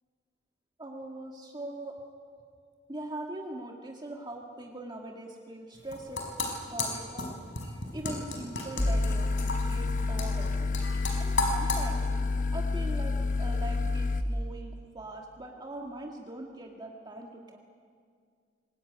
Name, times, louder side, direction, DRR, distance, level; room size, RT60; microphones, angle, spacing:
voice 1, 0.8-2.0 2.9-6.3 6.7-7.4 7.9-10.7 11.2-12.1 12.5-17.6, right 1 dB, 25° right, 1 dB, 2.0 m, -41 dB
sound 1, 5.8-11.8, left 3 dB, 80° left, 5.2 m, -34 dB
sound 2, 8.8-14.2, left 3 dB, 45° left, 1.0 m, -29 dB
24.5 x 21.5 x 9.5 m, 2.1 s
head